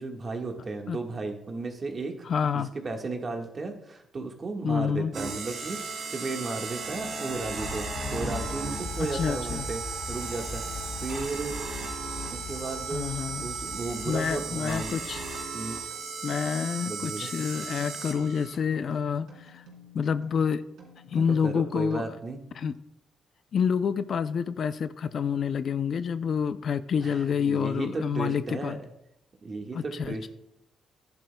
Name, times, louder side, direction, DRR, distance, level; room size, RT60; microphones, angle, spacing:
voice 1, 0.0-2.3 2.5-5.8 6.1-9.8 10.1-11.6 12.3-15.0 15.5-15.8 16.8-17.3 21.1-22.4 27.0-28.8 29.4-30.3, right 3 dB, 35° right, 3 dB, 1.5 m, -34 dB
voice 2, 2.3-2.7 4.6-5.1 9.0-9.7 12.9-13.4 14.1-15.2 16.2-19.6 19.9-20.6 21.1-22.1 22.6-22.7 23.5-28.8 29.7-30.3, left 7 dB, 55° left, 12 dB, 0.4 m, -28 dB
sound 1, 5.1-18.5, right 4 dB, 60° right, 3.0 m, -36 dB
sound 2, 7.3-15.1, left 3 dB, 35° left, 1.8 m, -40 dB
sound 3, 10.3-22.5, left 2 dB, 75° right, 3.6 m, -53 dB
14.5 x 10.5 x 2.2 m, 0.84 s
cardioid pair, 105°, 0 cm